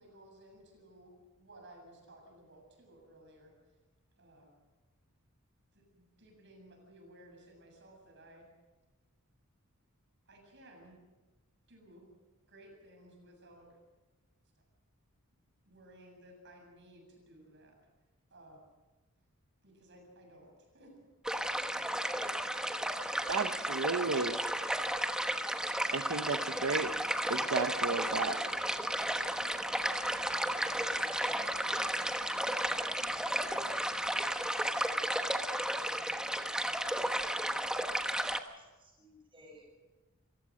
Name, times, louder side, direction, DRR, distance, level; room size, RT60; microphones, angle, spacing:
voice 1, 0.0-3.5 4.2-4.5 5.7-8.5 10.3-11.0 11.7-12.1 12.5-13.7 15.7-17.8 18.3-18.6 19.6-21.1, right 1 dB, 55° right, 2 dB, 7.5 m, -57 dB
sound 1, 21.2-38.4, right 1 dB, 5° right, 1.1 m, -33 dB
voice 2, 23.3-24.4 25.9-26.9 27.3-28.4, right 4 dB, 70° right, 7 dB, 0.9 m, -33 dB
sound 2, 26.2-34.3, left 1 dB, 35° left, 7.9 m, -56 dB
voice 3, 38.0-39.6, right 1 dB, 25° right, 0 dB, 7.4 m, -57 dB
28.0 x 16.0 x 6.4 m, 1.2 s
head